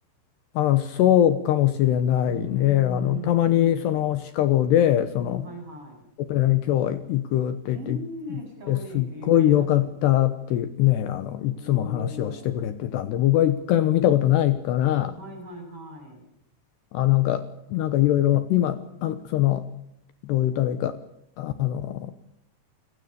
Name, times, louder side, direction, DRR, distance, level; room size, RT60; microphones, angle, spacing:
voice 1, 0.6-5.5 6.2-8.0 8.7-15.2 16.9-17.4 17.7-19.6 20.2-21.0 21.4-22.1, left 12 dB, 75° left, 11 dB, 3.0 m, -22 dB
voice 2, 2.3-4.0 5.2-6.1 7.7-9.9 11.6-12.6 15.1-16.3, right 1 dB, 30° right, 3 dB, 8.8 m, -39 dB
28.5 x 19.0 x 6.9 m, 0.76 s
omnidirectional pair, 5.4 m